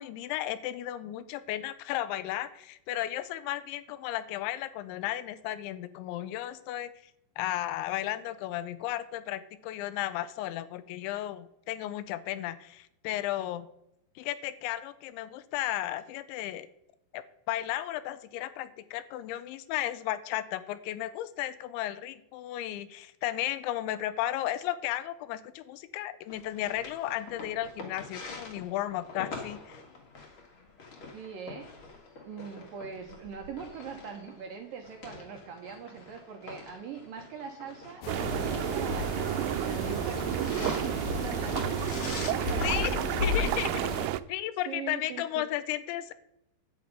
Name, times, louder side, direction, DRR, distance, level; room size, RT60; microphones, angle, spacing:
voice 1, 0.0-6.9 7.4-13.7 14.2-16.7 17.1-29.8 42.6-42.9 43.2-43.9 44.3-46.1, left 13 dB, 85° left, 14 dB, 3.1 m, -34 dB
sound 1, 26.3-42.3, left 3 dB, 50° left, 1.5 m, -45 dB
voice 2, 31.1-31.7 32.2-42.9 44.7-45.5, right 6 dB, 70° right, 3 dB, 2.2 m, -42 dB
sound 2, 38.0-44.1, left 6 dB, 70° left, 2.4 m, -35 dB
sound 3, 38.1-44.2, right 15 dB, 90° right, 2.9 m, -31 dB
10.5 x 8.5 x 5.4 m, 0.82 s
omnidirectional pair, 5.2 m